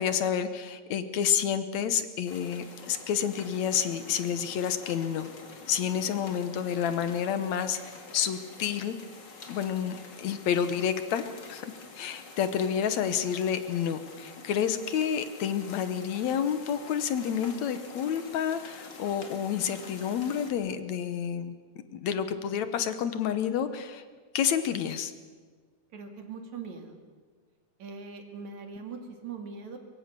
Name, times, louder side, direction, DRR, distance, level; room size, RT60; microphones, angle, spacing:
voice 1, 0.0-5.3 5.7-9.0 9.5-11.2 11.5-11.7 12.0-21.6 21.9-24.0 24.3-25.1, left 8 dB, 70° left, 10 dB, 2.3 m, -29 dB
sound 1, 2.3-20.5, left 4 dB, 35° left, 2.7 m, -47 dB
voice 2, 25.9-27.0 27.8-29.8, right 5 dB, 65° right, 5 dB, 3.7 m, -41 dB
23.5 x 23.5 x 6.8 m, 1.5 s
omnidirectional pair, 3.5 m